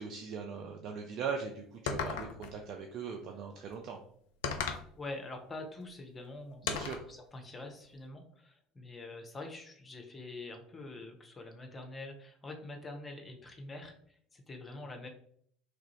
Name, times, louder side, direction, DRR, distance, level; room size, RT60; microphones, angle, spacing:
voice 1, 0.0-4.0 6.6-7.0, right 6 dB, 50° right, 3 dB, 0.4 m, -40 dB
sound 1, 1.9-2.5 4.4-4.9 6.7-7.1, left 6 dB, 65° left, 0.3 m, -35 dB
voice 2, 4.9-15.1, left 2 dB, 25° left, 4 dB, 0.7 m, -45 dB
3.0 x 2.5 x 2.9 m, 0.64 s
figure-of-eight pair, 65°, 0 cm